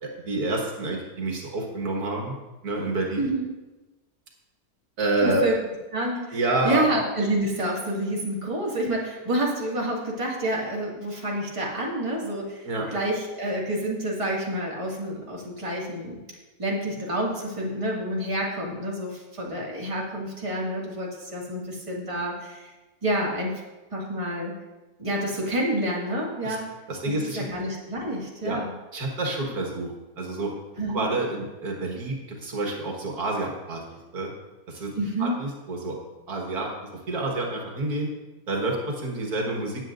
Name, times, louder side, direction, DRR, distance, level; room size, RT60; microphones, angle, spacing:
voice 1, 0.0-2.3 2.6-3.2 5.0-5.4 6.3-6.9 12.6-12.9 26.4-26.6 26.9-27.4 28.4-28.6 28.9-29.9 30.2-30.5 30.9-34.3 34.7-34.9 35.2-36.0 36.3-38.1 38.5-39.9, right 2 dB, 80° right, 0 dB, 2.1 m, -28 dB
voice 2, 3.1-3.5 5.2-5.6 5.9-6.4 6.6-16.2 16.6-22.7 23.0-23.5 23.9-24.5 25.0-26.7 27.0-28.7 30.8-31.1 34.9-35.3, right 1 dB, 20° right, -4 dB, 2.1 m, -28 dB
18.0 x 7.8 x 2.6 m, 1.1 s
omnidirectional pair, 1.6 m